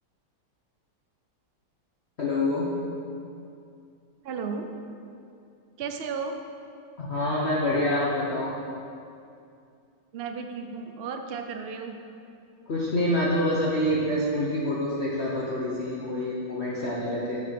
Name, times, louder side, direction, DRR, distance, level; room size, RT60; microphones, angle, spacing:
voice 1, 2.2-2.8 7.0-8.5 12.7-17.4, left 1 dB, 45° left, -5 dB, 1.1 m, -26 dB
voice 2, 4.2-4.7 5.8-6.4 10.1-12.0, right 5 dB, 70° right, 5 dB, 0.5 m, -34 dB
7.6 x 6.6 x 6.9 m, 2.5 s
omnidirectional pair, 2.0 m